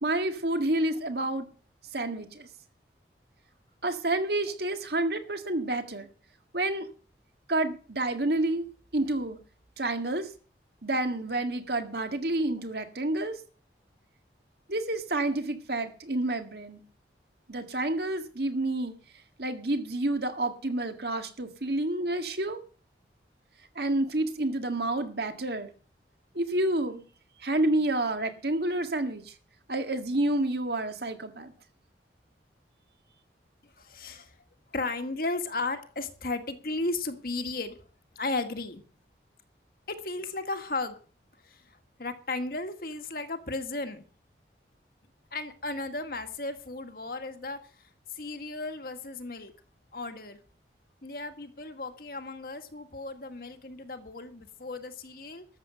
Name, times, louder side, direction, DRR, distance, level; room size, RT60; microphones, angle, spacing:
voice 1, 0.0-1.5 1.9-2.5 3.8-6.1 6.5-6.9 7.5-8.7 8.9-9.4 9.8-10.3 10.8-13.4 14.7-16.8 17.5-18.9 19.4-22.6 23.8-25.7 26.3-27.0 27.4-29.3 29.7-31.5, right 2 dB, 65° right, 1.9 m, -29 dB
voice 2, 33.8-34.4 34.7-37.8 38.2-38.8 39.9-41.0 41.4-41.6 42.0-44.0 45.3-47.6 48.1-49.5 49.9-50.4 51.0-55.5, left 2 dB, 55° left, 1.7 m, -35 dB
13.0 x 7.7 x 7.9 m
head